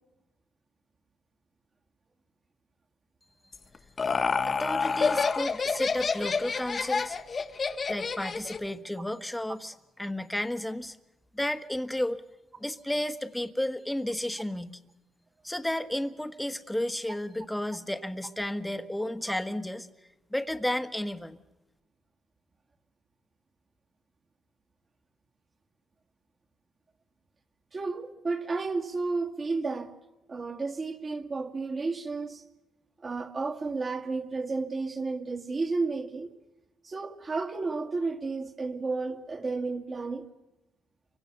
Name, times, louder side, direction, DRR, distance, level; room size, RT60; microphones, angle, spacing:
Laughter, 3.5-8.7, left 5 dB, 40° left, 1.3 m, -28 dB
voice 1, 4.5-7.2 7.9-11.0 11.3-12.2 12.6-14.8 15.4-19.9 20.3-21.4, left 1 dB, 5° left, 1.4 m, -32 dB
voice 2, 27.7-29.9 30.3-32.4 33.0-36.3 36.8-40.3, right 3 dB, 35° right, 2.2 m, -32 dB
30.0 x 24.5 x 6.8 m
cardioid pair, 90°, 0 cm